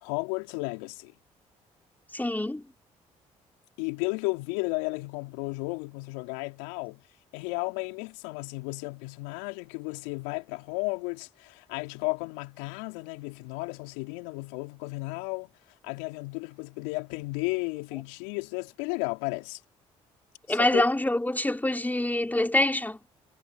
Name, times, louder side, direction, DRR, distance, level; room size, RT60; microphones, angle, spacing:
voice 1, 0.0-1.1 3.8-7.0 7.3-15.5 15.8-19.6 20.5-20.9, left 30 dB, 80° left, 3.7 m, -33 dB
voice 2, 2.1-2.7 20.5-23.0, left 1 dB, 10° left, 3.4 m, -25 dB
hypercardioid pair, 50°, 17 cm